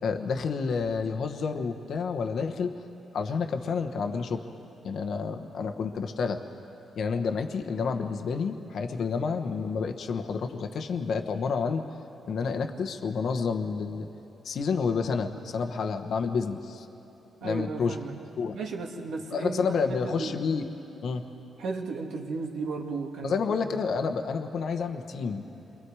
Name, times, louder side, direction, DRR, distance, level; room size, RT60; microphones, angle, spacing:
voice 1, 0.0-2.7 3.1-4.4 4.8-6.4 6.9-11.8 12.3-14.1 14.4-16.9 17.4-18.0 18.4-18.6 19.3-20.7 21.0-21.3 23.2-25.4, left 5 dB, 60° left, 6 dB, 1.1 m, -29 dB
voice 2, 17.4-18.1 18.5-19.6 19.9-20.3 21.6-23.7, right 4 dB, 75° right, 1 dB, 2.2 m, -34 dB
29.5 x 23.5 x 4.8 m, 3.0 s
cardioid pair, 115°, 0 cm